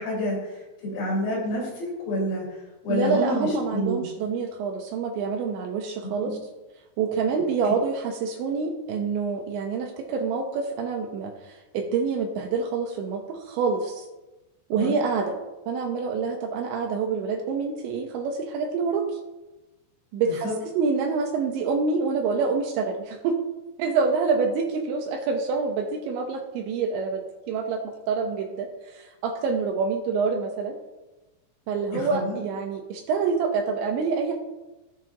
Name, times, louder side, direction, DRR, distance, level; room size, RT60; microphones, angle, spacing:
voice 1, 0.0-2.5 2.8-4.1 6.2-6.3 14.7-14.9 20.3-20.5 31.9-32.4, equal, 75° left, -4 dB, 5.8 m, -28 dB
voice 2, 2.9-6.4 7.0-14.1 14.7-15.4 15.7-19.1 20.1-23.4 23.8-30.8 31.7-34.4, right 5 dB, 80° right, 3 dB, 2.9 m, -27 dB
17.0 x 6.1 x 2.5 m, 1.1 s
omnidirectional pair, 5.8 m